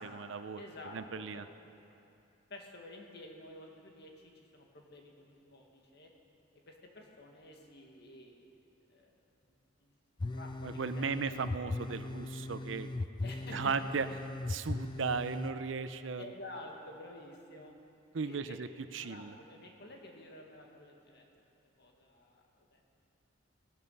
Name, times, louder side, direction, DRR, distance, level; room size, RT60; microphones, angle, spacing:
voice 1, 0.0-0.6 0.9-1.5 10.6-12.9 13.5-14.1 14.5-16.2 18.1-18.7 18.9-19.3, right 5 dB, 70° right, 11 dB, 0.6 m, -36 dB
voice 2, 0.6-1.5 2.5-6.1 6.5-8.5 8.9-9.9 10.3-11.6 13.2-13.7 16.2-17.7 18.2-18.6 19.0-21.2 21.8-22.9, left 1 dB, 55° left, 1 dB, 1.8 m, -51 dB
sound 1, 10.2-15.5, left 2 dB, 25° left, 0.3 m, -39 dB
17.0 x 12.0 x 5.4 m, 2.7 s
head